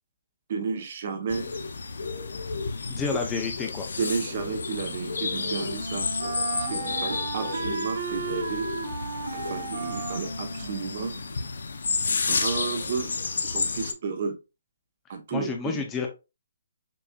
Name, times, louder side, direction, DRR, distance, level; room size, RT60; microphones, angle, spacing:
voice 1, 0.5-1.5 4.0-6.1 6.5-8.7 9.3-11.2 12.2-13.2 13.4-14.4 15.1-15.9, right 5 dB, 40° right, 0.9 m, -32 dB
sound 1, 1.3-13.9, left 4 dB, 80° left, 0.6 m, -31 dB
voice 2, 2.9-3.9 15.3-16.1, left 5 dB, 10° left, 0.5 m, -30 dB
Wind instrument woodwind instrument, 4.8-11.7, right 4 dB, 75° right, 1.2 m, -35 dB
6.8 x 2.6 x 2.3 m
hypercardioid pair, 170°, 0 cm